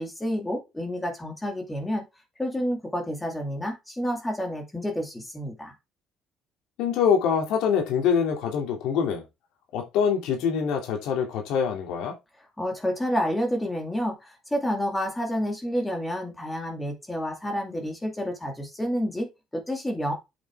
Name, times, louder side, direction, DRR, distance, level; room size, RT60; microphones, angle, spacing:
voice 1, 0.0-2.0 2.4-5.7 12.6-20.1, equal, 10° left, 2.2 m, -29 dB
voice 2, 6.8-9.2 9.7-12.1, left 7 dB, 85° left, 2.7 m, -24 dB
8.0 x 7.1 x 3.5 m
cardioid pair, 180°, 0 cm